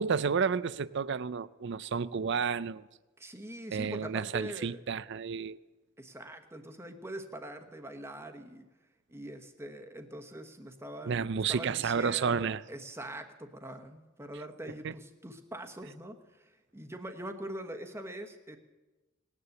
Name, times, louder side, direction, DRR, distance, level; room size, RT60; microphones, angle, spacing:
voice 1, 0.0-2.8 3.7-5.6 11.1-12.6 14.8-14.9, right 6 dB, 55° right, 0.5 m, -31 dB
voice 2, 3.2-4.8 6.0-8.6 9.1-18.6, right 1 dB, 10° right, 1.2 m, -43 dB
18.5 x 9.8 x 7.8 m
head